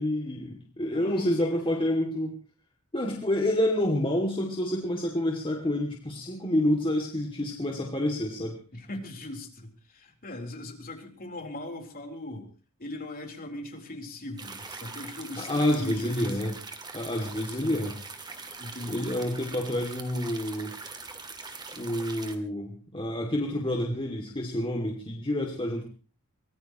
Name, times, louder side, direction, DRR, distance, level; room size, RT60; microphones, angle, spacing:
voice 1, 0.0-2.4 2.9-8.6 15.4-16.6 16.9-18.0 18.9-20.7 21.7-25.8, left 1 dB, 25° left, 0 dB, 2.5 m, -28 dB
voice 2, 0.9-1.6 8.7-12.5 12.8-16.6 17.1-17.8 18.6-19.1, left 1 dB, 40° left, 3 dB, 3.9 m, -40 dB
sound 1, 14.4-22.4, right 4 dB, 20° right, 1.9 m, -42 dB
24.0 x 19.5 x 3.1 m, 0.35 s
head